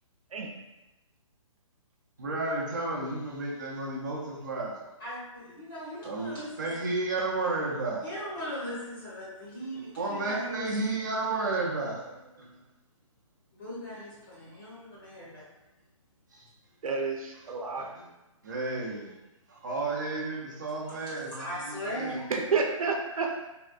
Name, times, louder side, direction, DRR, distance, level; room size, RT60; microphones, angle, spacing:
voice 1, 2.2-4.8 6.0-8.4 9.7-12.1 16.3-16.5 17.8-18.1 18.4-19.1 19.5-22.2, right 2 dB, 35° right, -3 dB, 0.5 m, -32 dB
voice 2, 5.5-6.7 8.0-10.6 13.6-15.4 21.4-22.2, equal, 40° left, -8 dB, 1.0 m, -38 dB
voice 3, 16.8-17.9 22.1-23.5, right 4 dB, 90° right, 1 dB, 0.6 m, -30 dB
3.5 x 2.1 x 2.4 m, 0.97 s
hypercardioid pair, 175°, 18 cm